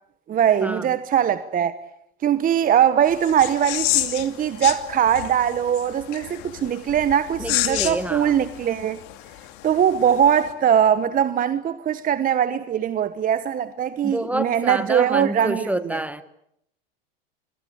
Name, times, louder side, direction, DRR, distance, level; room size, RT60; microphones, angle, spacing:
voice 1, 0.3-1.7 2.2-9.0 9.6-16.0, right 9 dB, 25° right, 1.2 m, -21 dB
sound 1, 3.0-10.5, left 17 dB, 60° left, 2.8 m, -30 dB
voice 2, 7.4-8.4 14.0-16.2, right 1 dB, 5° right, 1.3 m, -28 dB
26.5 x 21.5 x 8.6 m
hypercardioid pair, 105°, 30 cm